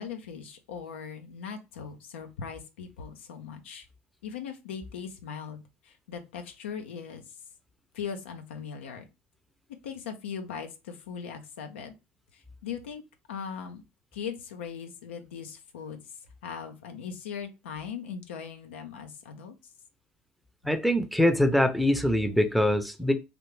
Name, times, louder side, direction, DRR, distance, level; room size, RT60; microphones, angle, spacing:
voice 1, 0.0-3.9 4.2-7.2 7.9-9.1 9.8-11.9 12.3-13.0 13.3-13.8 14.1-16.0 16.4-19.5, left 7 dB, 90° left, 0.5 m, -39 dB
voice 2, 20.6-23.1, left 1 dB, ahead, 0.6 m, -23 dB
3.3 x 2.4 x 3.1 m
hypercardioid pair, 75°, 6 cm